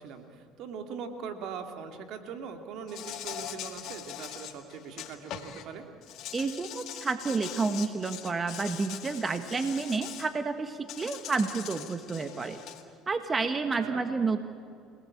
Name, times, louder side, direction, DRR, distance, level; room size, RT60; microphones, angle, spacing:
voice 1, 0.0-5.9 13.8-14.0, right 6 dB, 65° right, 6 dB, 2.6 m, -41 dB
Insect, 2.9-5.6 6.0-10.3 10.9-12.8, left 11 dB, 65° left, 2.0 m, -42 dB
voice 2, 6.3-12.6 13.1-14.4, right 4 dB, 30° right, 9 dB, 1.4 m, -30 dB
29.0 x 18.5 x 8.6 m, 2.5 s
supercardioid pair, 80°, 0 cm